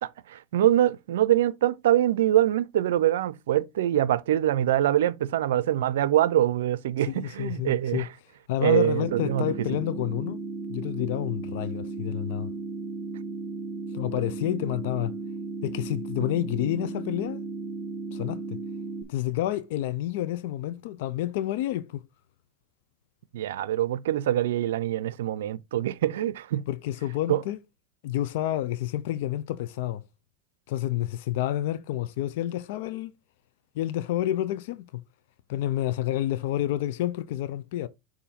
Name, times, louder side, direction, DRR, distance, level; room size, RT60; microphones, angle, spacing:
voice 1, 0.5-8.0 8.6-9.5 23.3-26.6 27.3-27.4, right 12 dB, 85° right, 0.5 m, -24 dB
voice 2, 7.1-8.1 8.5-10.4 10.7-12.5 13.9-15.1 15.6-17.4 18.1-18.6 19.1-22.0 26.7-27.6 28.0-30.0 30.7-33.1 33.7-35.0 35.5-37.9, left 13 dB, 70° left, 0.5 m, -29 dB
sound 1, 9.0-19.0, right 4 dB, 45° right, 1.1 m, -35 dB
6.9 x 2.7 x 5.6 m
supercardioid pair, 125°, 0 cm